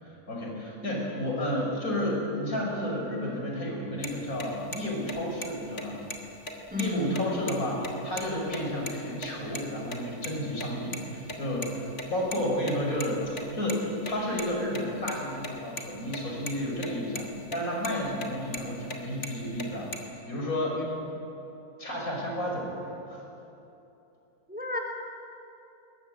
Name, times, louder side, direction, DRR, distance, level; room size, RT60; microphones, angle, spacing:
voice 1, 0.0-6.0 6.8-20.8 21.8-23.3, left 1 dB, 65° left, -1 dB, 6.2 m, -32 dB
sound 1, 4.0-4.1 4.4-4.5 4.7-4.8 5.1-5.5 5.8-5.9 6.1-6.2 6.5-7.5 7.8-7.9 8.2-8.3 8.5-8.9 9.2-9.6 9.9-11.0 11.2-13.8 14.1-15.8 16.1-16.2 16.5-16.9 17.1-17.6 17.8-19.0 19.2-20.0, left 1 dB, 50° left, 2.8 m, -37 dB
voice 2, 6.7-7.2 20.8-20.9 24.5-24.8, left 1 dB, 5° right, 0 dB, 3.9 m, -31 dB
22.5 x 20.0 x 9.3 m, 2.9 s
omnidirectional pair, 1.6 m